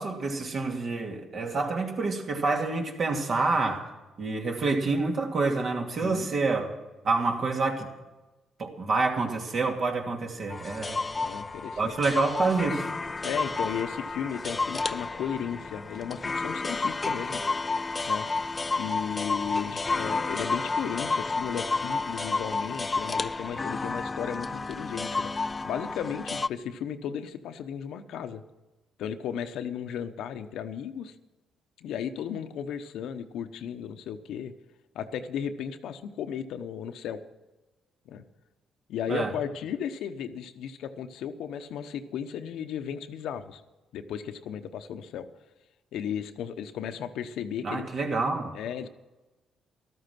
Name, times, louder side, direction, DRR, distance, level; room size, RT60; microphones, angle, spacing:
voice 1, 0.0-3.8 4.2-6.7 7.0-7.9 8.6-11.0 11.8-12.9 39.1-39.3 47.6-48.5, right 3 dB, 50° right, 2 dB, 2.7 m, -27 dB
voice 2, 6.0-6.3 11.2-11.9 13.2-17.4 18.1-18.3 18.8-25.3 25.6-28.4 29.0-31.1 31.8-34.5 34.9-37.2 38.0-38.2 38.9-43.6 43.9-45.3 45.9-47.9 48.5-48.9, left 8 dB, 80° left, 8 dB, 0.9 m, -35 dB
sound 1, 10.5-26.5, left 3 dB, 25° left, 0.4 m, -31 dB
13.5 x 13.0 x 6.0 m, 1.1 s
cardioid pair, 90°, 0 cm